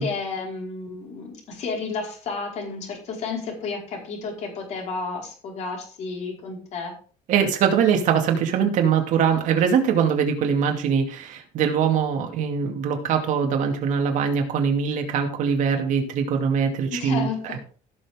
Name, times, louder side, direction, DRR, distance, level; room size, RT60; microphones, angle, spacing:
voice 1, 0.0-6.9 16.9-17.6, left 4 dB, 45° left, 0 dB, 4.8 m, -32 dB
voice 2, 7.3-17.8, right 7 dB, 50° right, 3 dB, 2.5 m, -22 dB
16.5 x 7.0 x 3.7 m, 0.40 s
cardioid pair, 165°, 16 cm